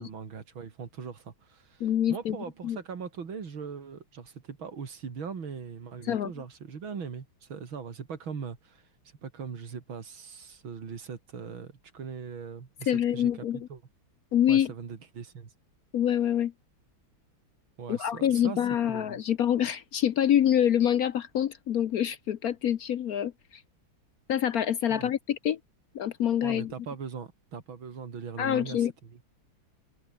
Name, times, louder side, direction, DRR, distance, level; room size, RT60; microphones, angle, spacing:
voice 1, 0.0-13.8 14.5-15.5 17.8-18.6 18.9-19.2 24.9-25.1 26.4-29.3, right 6 dB, 85° right, 3.4 m, -40 dB
voice 2, 1.8-2.4 2.6-2.8 6.1-6.3 12.9-13.7 14.3-14.7 15.9-16.5 17.9-23.3 24.3-25.6 25.9-26.7 28.4-28.9, left 10 dB, 60° left, 1.0 m, -26 dB
omnidirectional pair, 2.1 m